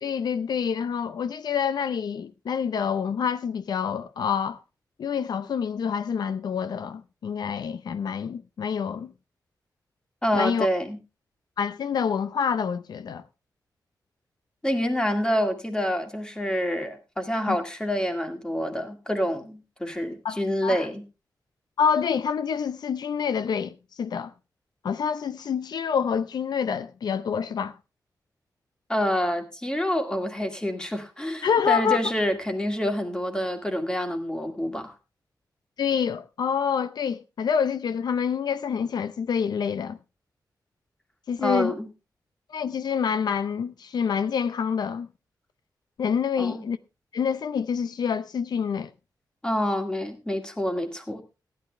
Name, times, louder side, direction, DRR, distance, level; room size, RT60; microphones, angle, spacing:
voice 1, 0.0-4.6 5.0-9.1 10.3-10.7 11.6-13.2 17.5-17.6 20.2-20.9 21.8-24.3 24.8-27.8 31.4-32.0 35.8-40.0 41.3-41.7 42.5-45.1 46.0-46.8 47.1-48.9, left 7 dB, 75° left, 0.6 m, -27 dB
voice 2, 10.2-11.0 14.6-21.0 28.9-34.9 41.4-41.9 46.4-46.7 49.4-51.2, equal, 10° left, 2.0 m, -27 dB
15.0 x 11.0 x 3.3 m
wide cardioid pair, 140°, 7 cm